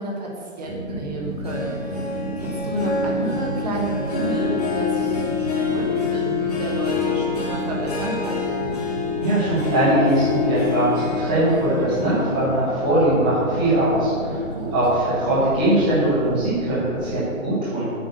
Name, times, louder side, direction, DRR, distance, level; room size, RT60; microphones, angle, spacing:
voice 1, 0.0-2.1 2.4-8.5 14.5-14.8, right 1 dB, 30° right, -2 dB, 1.6 m, -30 dB
sound 1, 0.6-17.3, right 1 dB, 65° left, 2.0 m, -33 dB
Harp, 1.4-14.2 14.6-15.0 15.5-15.6, left 5 dB, 30° left, 1.6 m, -27 dB
voice 2, 9.2-14.4 14.7-17.9, right 1 dB, 5° right, -11 dB, 0.9 m, -21 dB
7.9 x 5.9 x 6.7 m, 2.4 s
hypercardioid pair, 165°, 41 cm